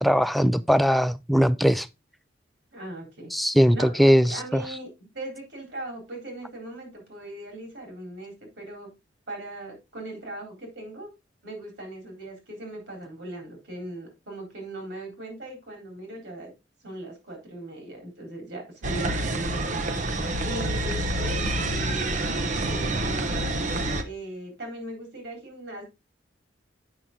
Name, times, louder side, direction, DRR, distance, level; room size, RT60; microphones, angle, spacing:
voice 1, 0.0-1.9 3.3-4.6, equal, ahead, 0.3 m, -20 dB
voice 2, 2.7-3.3 3.7-8.9 9.3-11.1 11.4-16.5 16.8-19.6 20.4-22.3 22.7-23.5 24.0-25.8, right 1 dB, 65° right, 3.8 m, -39 dB
sound 1, 18.8-24.0, right 2 dB, 40° right, 0.8 m, -27 dB
7.8 x 5.8 x 3.6 m
head